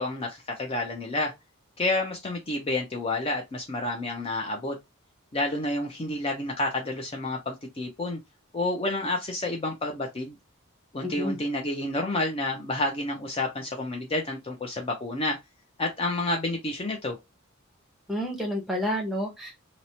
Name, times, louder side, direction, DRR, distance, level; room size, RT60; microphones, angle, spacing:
voice 1, 0.0-1.3 1.8-4.8 5.3-8.2 8.5-10.4 10.9-15.4 15.8-17.2, left 2 dB, 25° left, 0.4 m, -29 dB
voice 2, 11.0-11.4 18.1-19.6, equal, ahead, 0.7 m, -30 dB
2.8 x 2.0 x 2.7 m
head